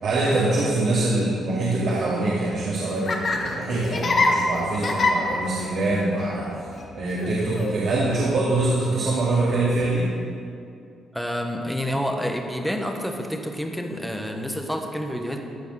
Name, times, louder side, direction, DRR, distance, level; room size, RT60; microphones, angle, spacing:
voice 1, 0.0-6.5 6.9-10.1, right 2 dB, 65° right, -8 dB, 2.2 m, -24 dB
Laughter, 2.5-10.0, left 2 dB, 45° left, 1.3 m, -28 dB
voice 2, 11.1-15.4, equal, ahead, 3 dB, 1.2 m, -28 dB
14.0 x 5.1 x 6.4 m, 2.4 s
cardioid pair, 90°, 0 cm